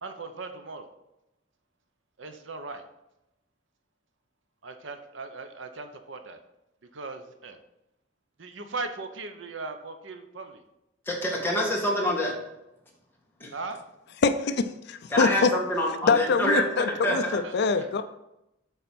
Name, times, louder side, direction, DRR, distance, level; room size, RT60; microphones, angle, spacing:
voice 1, 0.0-0.9 2.2-2.8 4.6-6.4 6.9-7.6 8.4-10.6 13.5-13.8 17.2-18.0, right 3 dB, 70° right, 0.9 m, -38 dB
voice 2, 11.1-12.3 13.4-13.5 15.1-16.6 17.0-17.4, left 1 dB, 10° left, 1.9 m, -26 dB
voice 3, 14.2-15.5 16.0-18.0, left 4 dB, 60° left, 0.4 m, -24 dB
8.1 x 4.2 x 6.0 m
head